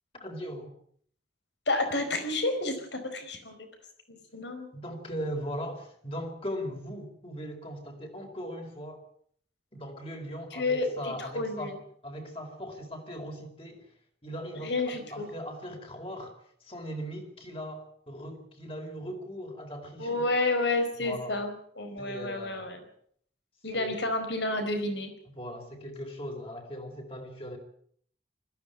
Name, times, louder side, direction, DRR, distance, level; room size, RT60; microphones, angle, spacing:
voice 1, 0.1-0.7 4.7-9.0 9.7-11.8 12.0-13.9 14.2-20.3 21.0-21.4 22.0-22.8 23.7-24.0 25.3-27.6, equal, 30° left, 3 dB, 4.4 m, -39 dB
voice 2, 1.7-3.7 4.1-4.7 10.5-11.8 14.6-15.3 20.0-22.8 23.6-25.1, left 2 dB, 75° left, 7 dB, 4.8 m, -30 dB
21.0 x 15.5 x 8.9 m, 0.63 s
head